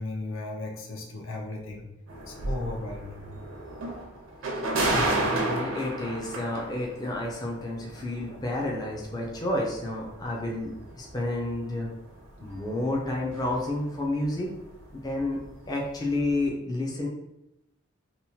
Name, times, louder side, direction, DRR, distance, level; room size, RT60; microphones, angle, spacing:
voice 1, 0.0-1.9 2.3-3.3, left 2 dB, 75° left, 1 dB, 0.6 m, -36 dB
sound 1, 2.1-14.0 14.2-15.9 16.2-16.4, right 2 dB, 70° right, 0.5 m, -33 dB
voice 2, 4.5-11.9 12.4-14.5 14.9-15.4 15.7-17.1, left 1 dB, 20° left, -2 dB, 0.4 m, -30 dB
2.8 x 2.0 x 2.7 m, 0.90 s
head